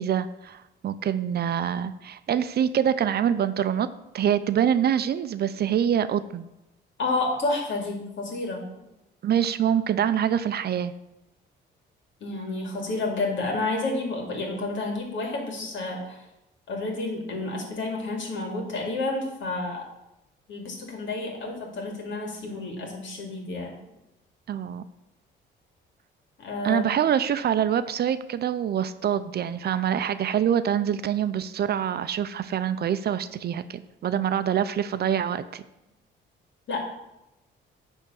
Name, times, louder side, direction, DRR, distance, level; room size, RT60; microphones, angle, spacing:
voice 1, 0.0-3.9 4.1-6.5 9.2-10.9 24.5-24.8 26.6-35.6, right 9 dB, 55° right, 12 dB, 0.5 m, -25 dB
voice 2, 7.0-8.7 12.2-16.2 16.7-19.8 20.5-23.7 26.4-26.8 36.7-36.8, left 2 dB, 70° left, 1 dB, 2.4 m, -30 dB
10.0 x 3.6 x 6.9 m, 0.91 s
cardioid pair, 90°, 20 cm